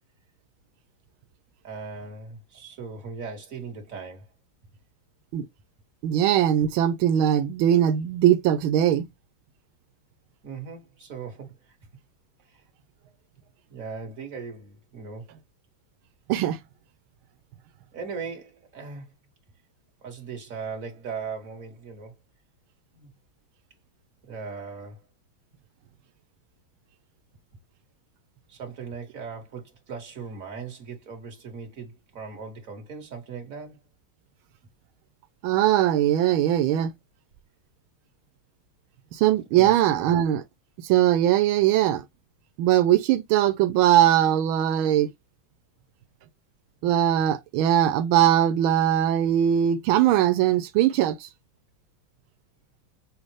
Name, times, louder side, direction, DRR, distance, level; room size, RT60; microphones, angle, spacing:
voice 1, 1.6-4.3 10.4-11.8 12.5-12.6 13.7-15.4 17.9-19.1 20.0-22.2 22.9-23.1 24.3-25.0 28.5-33.8 39.6-40.1, right 5 dB, 40° right, 2.1 m, -38 dB
voice 2, 6.0-9.0 16.3-16.6 35.4-36.9 39.1-40.4 40.8-42.0 42.6-45.1 46.8-51.3, right 11 dB, 90° right, 1.4 m, -21 dB
6.5 x 2.6 x 3.1 m
omnidirectional pair, 2.2 m